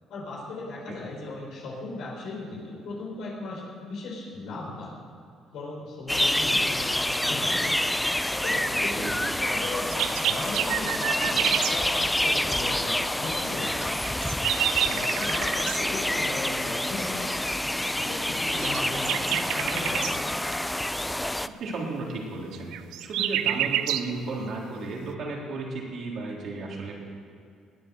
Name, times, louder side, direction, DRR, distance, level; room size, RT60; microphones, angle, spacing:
voice 1, 0.1-5.0 5.5-7.8 8.4-14.1 14.8-17.5 17.9-20.4, left 2 dB, 75° left, -3 dB, 4.1 m, -37 dB
sound 1, 6.1-21.5, left 1 dB, 5° left, 0.4 m, -27 dB
voice 2, 9.0-9.3 21.4-22.7 23.0-27.0, right 3 dB, 60° right, -1 dB, 3.6 m, -34 dB
sound 2, 9.7-11.8 13.8-15.8 18.5-20.1 22.5-24.1, right 11 dB, 85° right, 0.6 m, -28 dB
20.5 x 8.2 x 6.4 m, 2.4 s
cardioid pair, 105°, 0 cm